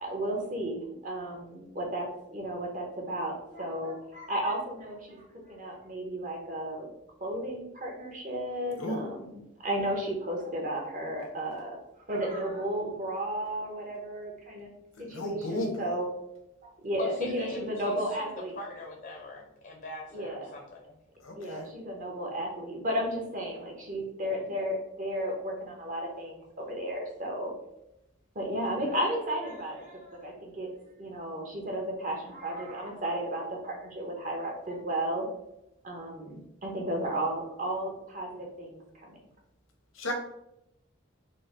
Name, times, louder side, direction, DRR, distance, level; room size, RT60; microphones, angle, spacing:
voice 1, 0.0-5.2 5.5-6.9 7.2-11.8 12.1-14.7 15.0-16.1 16.8-18.6 20.1-20.5 21.4-27.5 28.3-30.7 31.0-35.3 35.8-39.1, right 1 dB, 40° right, 0 dB, 0.9 m, -33 dB
voice 2, 8.8-9.1 15.0-15.9 21.2-21.7 40.0-40.1, left 1 dB, 85° left, 3 dB, 0.8 m, -33 dB
voice 3, 17.0-21.0 21.4-21.6, left 3 dB, 45° left, 1 dB, 0.5 m, -42 dB
4.0 x 2.1 x 3.7 m, 0.83 s
head